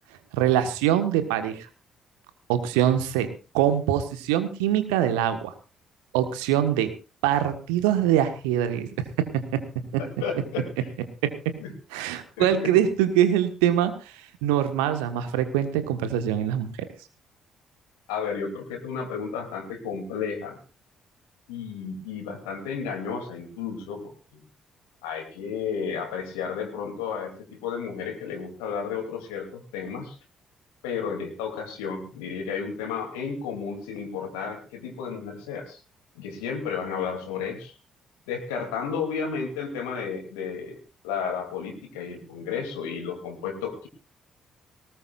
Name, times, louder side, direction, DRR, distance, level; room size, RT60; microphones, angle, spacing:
voice 1, 0.3-1.7 2.5-3.3 3.5-5.5 6.1-6.9 7.2-8.9 9.5-9.6 9.9-10.0 11.2-11.3 11.9-14.1 14.4-16.7, right 11 dB, 70° right, 10 dB, 1.5 m, -23 dB
voice 2, 10.0-10.9 11.6-11.7 12.4-12.7 18.1-20.6 21.5-24.4 25.0-30.2 30.8-35.8 36.1-37.7 38.3-43.9, left 6 dB, 70° left, 4 dB, 2.9 m, -32 dB
19.5 x 18.5 x 2.5 m, 0.32 s
figure-of-eight pair, 45°, 0 cm